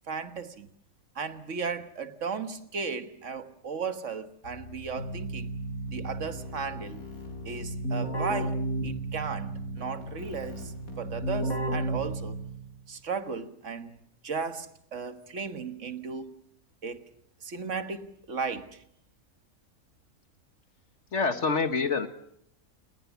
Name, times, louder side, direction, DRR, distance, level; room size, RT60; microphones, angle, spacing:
voice 1, 0.1-0.7 1.2-5.5 5.9-7.0 7.5-10.7 11.0-12.4 12.9-14.0 14.2-16.3 16.8-17.0 17.4-18.8, right 5 dB, 55° right, 1.7 m, -35 dB
Keyboard (musical), 4.4-12.7, right 1 dB, 70° left, 7.3 m, -34 dB
voice 2, 21.1-22.1, left 4 dB, 55° left, 1.8 m, -26 dB
29.0 x 20.0 x 7.2 m
omnidirectional pair, 1.5 m